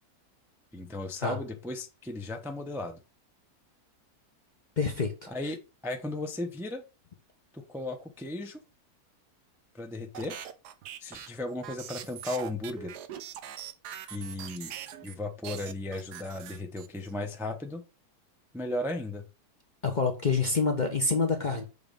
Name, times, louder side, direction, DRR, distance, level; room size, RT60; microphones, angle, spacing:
voice 1, 0.7-3.0 5.3-6.8 7.5-8.6 9.7-10.4 11.0-13.0 14.1-14.7 15.0-17.8 18.5-19.2, left 2 dB, 5° right, 0.5 m, -35 dB
voice 2, 4.8-5.3 19.8-21.6, left 4 dB, 40° left, 0.7 m, -27 dB
sound 1, 10.1-15.2 15.4-17.1, right 10 dB, 90° right, 1.3 m, -42 dB
6.8 x 3.1 x 5.1 m
omnidirectional pair, 1.7 m